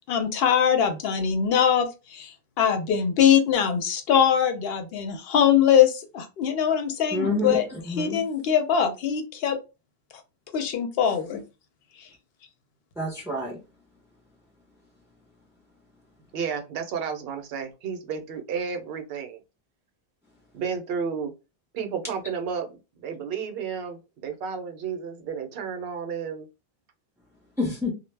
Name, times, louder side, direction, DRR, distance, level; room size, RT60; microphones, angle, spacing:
voice 1, 0.1-7.6 8.0-9.6 10.5-11.4, left 8 dB, 70° left, 0.8 m, -22 dB
voice 2, 7.1-8.2 13.0-13.6 27.6-27.9, left 2 dB, 5° right, 0.4 m, -28 dB
voice 3, 16.3-19.4 20.5-21.3 21.7-22.7 23.0-26.5, right 6 dB, 70° right, 0.8 m, -32 dB
2.0 x 2.0 x 3.2 m
omnidirectional pair, 1.1 m